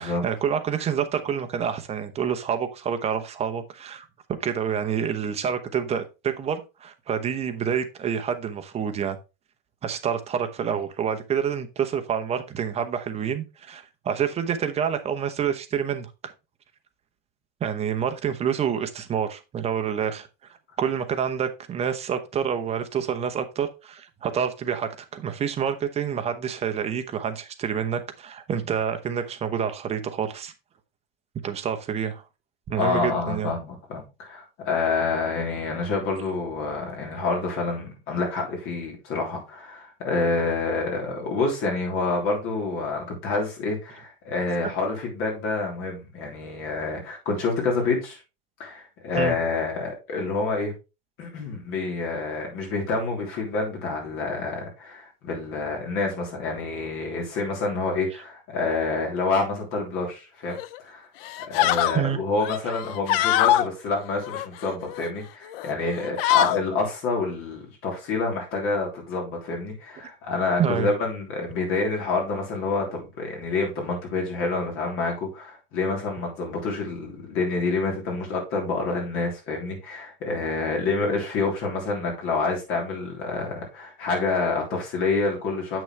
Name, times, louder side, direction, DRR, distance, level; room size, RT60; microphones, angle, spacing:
voice 1, 0.0-9.2 9.8-16.3 17.6-20.3 20.8-30.5 31.4-32.2 32.7-33.5 49.2-49.4 61.9-62.2 70.6-70.9, right 8 dB, 20° right, 0.8 m, -28 dB
voice 2, 32.8-48.2 48.6-50.7 51.2-60.6 60.8-61.1 61.4-85.8, left 3 dB, 45° left, 3.4 m, -28 dB
sound 1, 60.5-60.8 61.2-62.0 62.4-63.7 64.2-65.1 65.5-65.7 66.0-66.6, left 13 dB, 75° left, 0.6 m, -23 dB
7.8 x 6.1 x 3.3 m
supercardioid pair, 160°, 29 cm